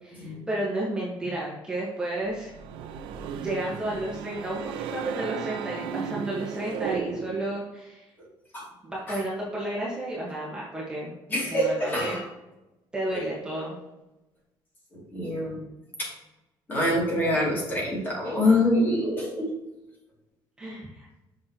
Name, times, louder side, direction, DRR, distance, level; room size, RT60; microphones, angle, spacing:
voice 1, 0.0-2.5 3.4-8.0 8.8-11.1 11.5-12.2 12.9-13.8 20.6-21.1, right 1 dB, 10° right, -6 dB, 1.3 m, -32 dB
sound 1, 2.3-7.6, right 7 dB, 80° right, 0.7 m, -35 dB
voice 2, 11.3-12.2 13.1-13.2 14.9-15.6 16.0-16.1 16.7-19.5, left 1 dB, 25° left, -4 dB, 2.6 m, -25 dB
7.5 x 6.2 x 2.9 m, 1.0 s
cardioid pair, 165°, 8 cm